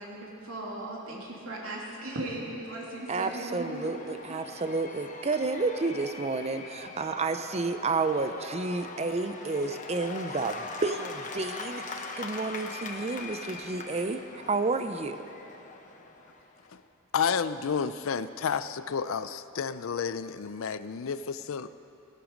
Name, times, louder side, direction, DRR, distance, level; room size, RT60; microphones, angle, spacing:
voice 1, 0.0-4.0 4.3-4.4, right 1 dB, 75° right, -3 dB, 2.7 m, -38 dB
Cheering / Applause / Crowd, 2.0-16.7, left 4 dB, 40° left, 1.0 m, -42 dB
voice 2, 3.1-15.2, right 3 dB, 30° right, 9 dB, 0.6 m, -31 dB
voice 3, 17.1-21.7, left 6 dB, 70° left, 13 dB, 0.5 m, -31 dB
17.5 x 11.5 x 5.2 m, 2.7 s
head